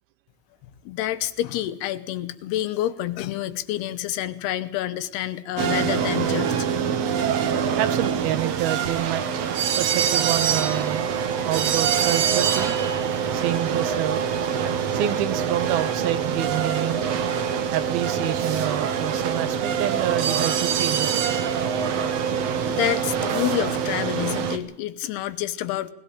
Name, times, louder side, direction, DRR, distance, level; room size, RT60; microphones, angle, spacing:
voice 1, 0.9-6.5 22.7-25.9, left 13 dB, 90° left, 12 dB, 3.1 m, -28 dB
sound 1, 5.6-24.6, right 7 dB, 60° right, 1.8 m, -24 dB
voice 2, 7.8-9.3 9.8-11.1 11.4-12.8 13.3-14.3 14.9-17.3 17.7-21.4, right 13 dB, 75° right, 14 dB, 2.7 m, -28 dB
20.0 x 16.5 x 8.9 m, 0.78 s
omnidirectional pair, 4.5 m